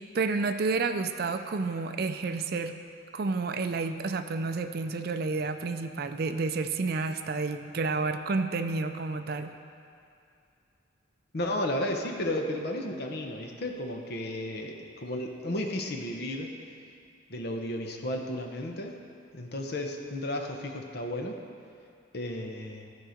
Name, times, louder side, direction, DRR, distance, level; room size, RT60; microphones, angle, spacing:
voice 1, 0.0-2.8 3.1-9.5, right 4 dB, 50° right, 8 dB, 0.4 m, -30 dB
voice 2, 11.3-16.5 17.3-18.9 19.3-21.4 22.1-22.9, left 1 dB, 50° left, 3 dB, 0.8 m, -33 dB
14.0 x 4.8 x 5.1 m, 2.5 s
head